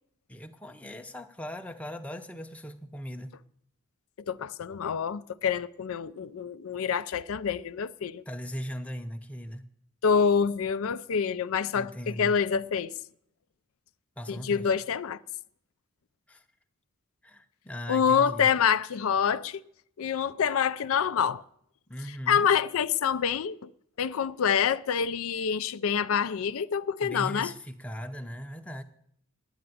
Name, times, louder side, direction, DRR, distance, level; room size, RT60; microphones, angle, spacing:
voice 1, 0.3-3.4 8.3-9.6 11.7-12.4 14.2-14.7 16.3-16.4 17.2-18.5 21.9-22.5 27.0-28.8, equal, 5° left, 0.6 m, -39 dB
voice 2, 4.3-8.2 10.0-12.9 14.3-15.2 17.9-19.6 20.0-21.4 22.3-23.7 24.0-27.5, left 7 dB, 75° left, 0.4 m, -26 dB
10.0 x 8.7 x 9.5 m
head